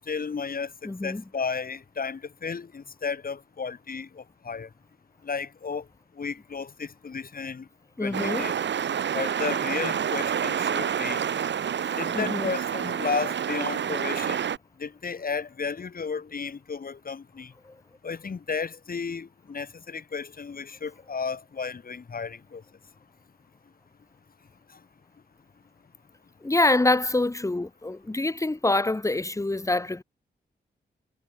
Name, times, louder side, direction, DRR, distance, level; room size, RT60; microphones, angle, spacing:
voice 1, 0.1-4.7 5.2-5.8 6.2-7.7 8.0-8.5 9.1-11.2 12.0-14.4 14.8-17.5 18.0-22.6, left 5 dB, 50° left, 2.4 m, -33 dB
voice 2, 0.8-1.2 8.0-8.5 12.1-12.5 17.6-17.7 26.4-30.0, left 2 dB, 15° left, 1.4 m, -25 dB
sound 1, 8.1-14.6, right 8 dB, 80° right, 2.3 m, -28 dB
cardioid pair, 70°, 18 cm